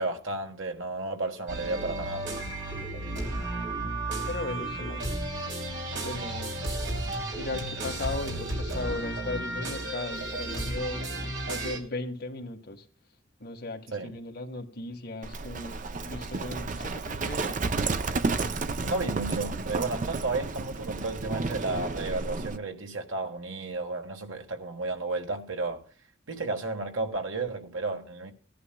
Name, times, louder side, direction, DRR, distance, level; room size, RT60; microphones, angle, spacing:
voice 1, 0.0-2.3 13.9-14.1 18.8-25.8 26.3-28.3, right 3 dB, 85° right, 1.4 m, -32 dB
sound 1, 1.5-11.8, right 2 dB, 65° right, 3.1 m, -33 dB
voice 2, 4.3-5.0 6.0-6.5 7.3-11.0 11.5-12.8 13.4-17.6, left 2 dB, 55° left, 1.7 m, -37 dB
Livestock farm animals working animals, 15.2-22.6, right 3 dB, 40° right, 0.5 m, -32 dB
17.5 x 11.0 x 2.3 m
head